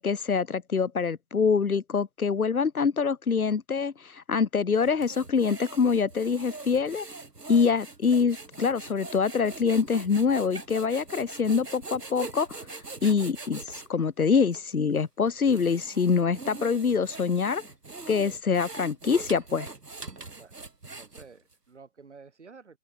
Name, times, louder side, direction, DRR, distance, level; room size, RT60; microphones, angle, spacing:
voice 1, 0.0-7.1 7.5-12.6 13.0-17.6 18.1-19.7, left 5 dB, 60° left, 1.0 m, -25 dB
sound 1, 4.7-13.9 14.5-14.6 15.3-21.5, right 3 dB, 75° right, 2.6 m, -42 dB
voice 2, 21.0-22.8, right 5 dB, 45° right, 6.1 m, -51 dB
open air
figure-of-eight pair, 155°, 49 cm